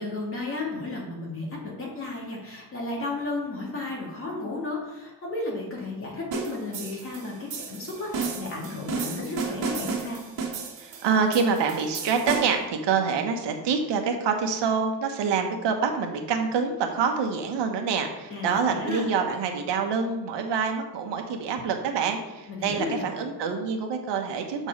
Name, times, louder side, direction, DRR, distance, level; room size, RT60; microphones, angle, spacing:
voice 1, 0.0-10.2 18.3-19.1 22.5-23.0, left 2 dB, 30° left, -3 dB, 2.2 m, -33 dB
sound 1, 6.3-12.7, right 5 dB, 60° right, 2.1 m, -33 dB
voice 2, 10.8-24.7, right 5 dB, 75° right, 4 dB, 1.2 m, -26 dB
7.3 x 4.6 x 5.3 m, 1.0 s
cardioid pair, 160°, 42 cm